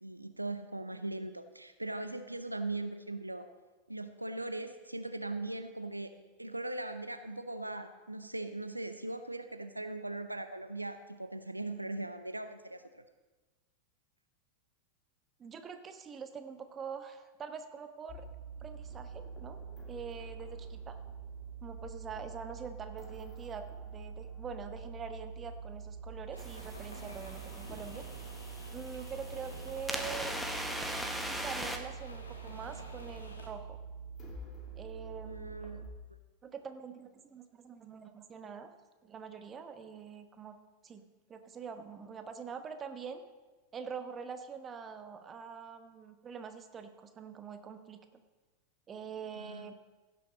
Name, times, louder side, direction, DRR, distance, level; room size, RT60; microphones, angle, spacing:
voice 1, 0.0-3.5 3.9-6.1 6.4-13.0 35.2-35.9 49.3-49.7, right 2 dB, 85° right, 10 dB, 0.6 m, -40 dB
voice 2, 15.4-18.3 18.6-19.6 19.9-21.0 21.6-23.7 23.9-28.1 28.7-30.6 31.3-33.8 34.8-35.9 36.4-38.7 39.0-40.6 40.8-43.2 43.7-48.0 48.9-49.7, right 6 dB, 25° right, 8 dB, 1.0 m, -45 dB
sound 1, 18.1-35.9, right 5 dB, 25° left, 2.5 m, -45 dB
sound 2, 26.3-33.5, left 2 dB, 75° left, 1.8 m, -51 dB
sound 3, 26.4-31.8, equal, ahead, 1.1 m, -40 dB
16.0 x 6.8 x 5.1 m, 1.2 s
figure-of-eight pair, 90°, 0 cm